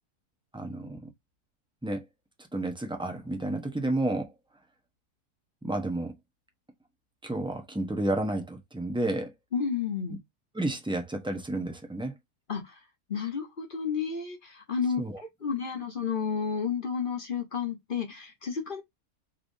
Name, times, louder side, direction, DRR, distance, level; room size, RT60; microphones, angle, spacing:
voice 1, 0.5-1.0 1.8-2.0 2.5-4.3 5.6-6.1 7.2-9.3 10.5-12.1 15.0-15.2, right 1 dB, 5° right, 0.6 m, -31 dB
voice 2, 9.5-10.2 12.5-12.6 13.1-15.0 15.4-18.8, left 6 dB, 40° left, 1.1 m, -31 dB
5.8 x 3.4 x 2.6 m
omnidirectional pair, 1.6 m